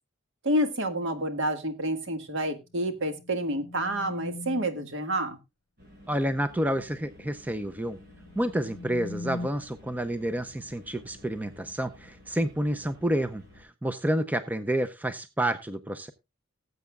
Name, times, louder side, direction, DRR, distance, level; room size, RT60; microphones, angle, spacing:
voice 1, 0.4-5.4, right 1 dB, 65° right, 7 dB, 1.7 m, -29 dB
sound 1, 2.6-4.9 7.9-9.5, left 2 dB, 55° left, 1.0 m, -41 dB
sound 2, 5.8-13.6, left 1 dB, 45° right, 5.7 m, -53 dB
voice 2, 6.1-8.0 8.4-16.1, right 1 dB, 10° right, 10 dB, 0.5 m, -29 dB
18.5 x 8.0 x 2.3 m, 0.24 s
head